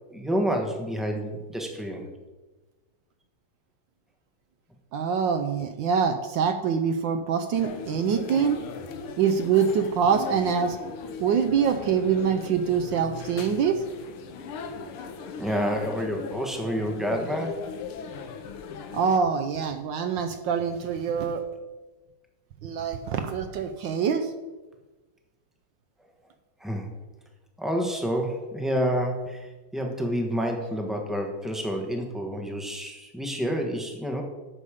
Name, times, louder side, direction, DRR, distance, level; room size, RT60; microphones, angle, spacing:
voice 1, 0.1-2.1 14.5-14.8 15.4-17.6 26.6-26.9 27.6-34.2, equal, ahead, 2 dB, 0.4 m, -29 dB
voice 2, 4.9-8.6 9.2-10.8 11.2-13.8 18.9-21.4 22.6-24.3, right 7 dB, 70° right, 7 dB, 1.2 m, -25 dB
sound 1, 7.5-19.2, left 5 dB, 90° left, 1.8 m, -39 dB
10.5 x 7.1 x 4.9 m, 1.2 s
omnidirectional pair, 2.4 m